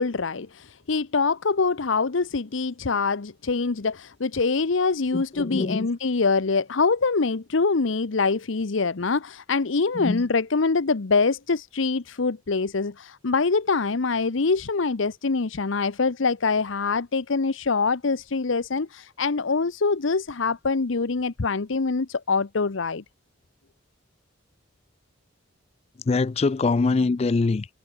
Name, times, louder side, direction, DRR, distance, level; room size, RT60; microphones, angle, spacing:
voice 1, 0.0-23.0, left 4 dB, 70° left, 0.8 m, -24 dB
voice 2, 5.1-5.9 9.9-10.2 26.1-27.8, left 3 dB, 30° left, 0.3 m, -24 dB
head